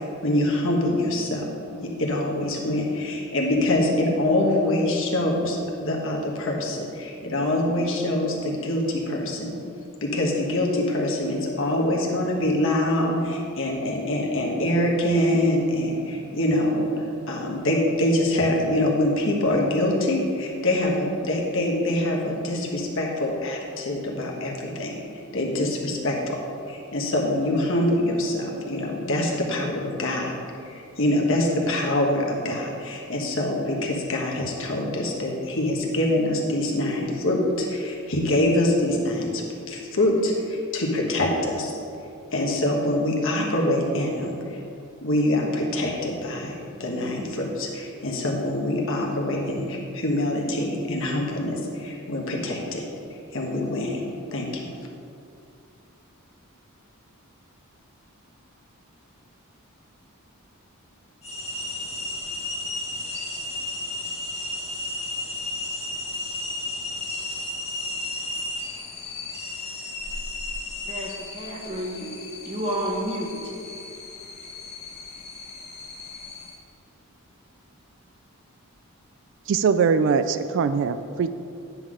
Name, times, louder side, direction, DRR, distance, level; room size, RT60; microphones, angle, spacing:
voice 1, 0.2-1.4 1.7-9.5 10.0-16.9 17.3-24.9 25.3-26.4 26.7-30.3 30.7-41.7 42.3-44.6 45.0-46.5 46.8-52.8 53.3-54.0 54.3-54.6, left 1 dB, 60° left, -1 dB, 1.3 m, -24 dB
sound 1, 61.2-76.5, left 2 dB, 30° left, 1.3 m, -34 dB
voice 2, 70.9-72.1 72.5-73.3, right 1 dB, 30° right, -3 dB, 1.2 m, -30 dB
voice 3, 79.5-81.3, right 5 dB, 55° right, 12 dB, 0.3 m, -22 dB
9.7 x 3.9 x 6.3 m, 2.5 s
head